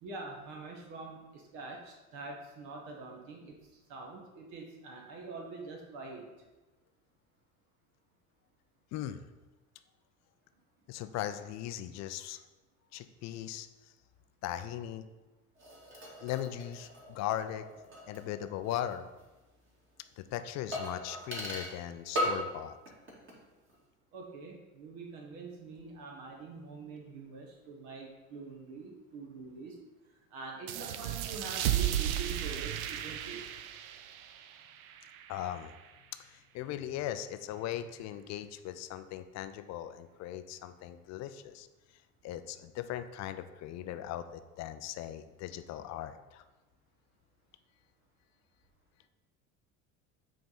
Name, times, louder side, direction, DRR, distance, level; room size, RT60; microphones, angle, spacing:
voice 1, 0.0-6.3 24.1-29.8 30.3-33.4, right 3 dB, 55° right, 1 dB, 1.5 m, -45 dB
voice 2, 8.9-9.2 10.9-12.4 12.9-13.7 14.4-15.1 16.2-17.7 18.1-19.1 20.2-22.8 35.3-35.7 36.2-41.7 41.9-46.4, left 11 dB, 40° left, 10 dB, 0.5 m, -39 dB
sound 1, 15.5-18.9 19.2-19.3 20.7-21.8 22.1-22.6 22.9-23.4 23.7-23.8, equal, 30° right, 2.2 m, -38 dB
sound 2, 30.7-35.9, right 12 dB, 70° right, 0.6 m, -35 dB
8.3 x 3.4 x 4.2 m, 1.1 s
figure-of-eight pair, 70°, 43 cm